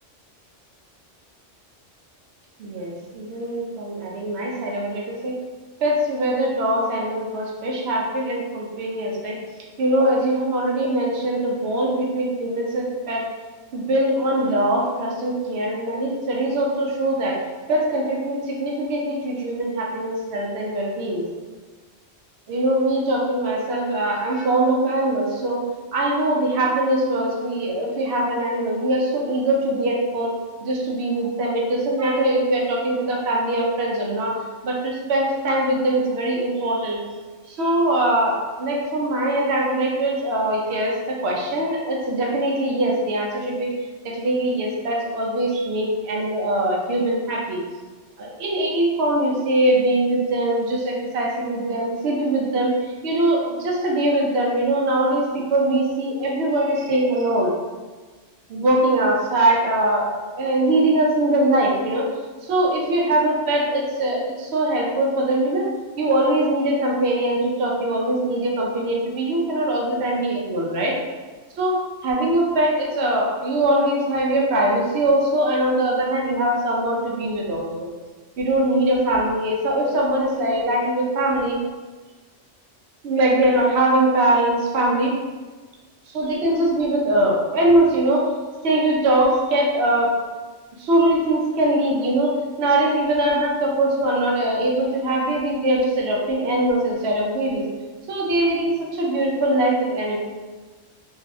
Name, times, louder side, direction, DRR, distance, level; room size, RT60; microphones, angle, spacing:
voice 1, 2.6-5.3 5.8-9.4 9.8-13.2 13.7-17.4 17.7-21.2 22.5-25.6 25.9-30.3 30.6-34.3 34.6-37.0 37.5-43.7 44.0-47.6 48.2-52.7 53.0-57.5 58.5-60.1 60.4-62.1 62.4-65.7 66.0-70.9 71.6-77.9 78.4-81.6 83.0-85.1 86.1-88.2 88.6-90.1 90.8-97.6 98.1-100.2, right 1 dB, 65° right, -2 dB, 0.7 m, -22 dB
2.6 x 2.3 x 2.4 m, 1.3 s
omnidirectional pair, 1.3 m